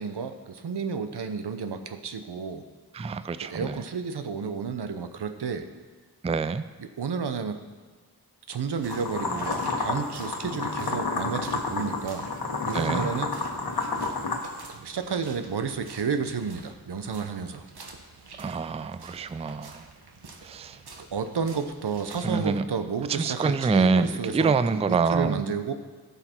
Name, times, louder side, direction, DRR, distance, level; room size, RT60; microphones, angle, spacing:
voice 1, 0.0-2.6 3.4-5.7 6.8-7.6 8.5-12.3 12.6-13.3 14.7-17.6 21.1-25.7, right 5 dB, 90° right, 8 dB, 0.8 m, -31 dB
voice 2, 2.9-3.8 6.2-6.7 12.7-13.1 18.4-19.9 20.4-20.8 22.2-22.6 23.1-25.4, right 4 dB, 20° right, 13 dB, 0.3 m, -26 dB
sound 1, 8.7-22.3, right 3 dB, 75° right, 1.3 m, -48 dB
sound 2, 8.8-14.6, left 3 dB, 70° left, 1.3 m, -30 dB
16.0 x 5.7 x 4.4 m, 1.4 s
wide cardioid pair, 85°, 39 cm